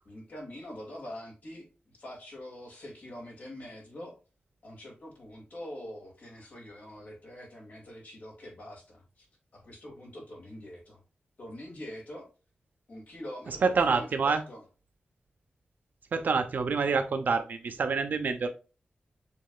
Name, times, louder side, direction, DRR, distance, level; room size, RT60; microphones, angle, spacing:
voice 1, 0.0-4.2 4.6-9.3 9.5-11.0 11.4-12.3 12.9-14.6, left 1 dB, 60° left, -1 dB, 2.2 m, -44 dB
voice 2, 13.5-14.4 16.1-18.5, right 4 dB, 65° right, 8 dB, 0.7 m, -27 dB
6.8 x 3.2 x 2.3 m, 0.33 s
wide cardioid pair, 155°, 3 cm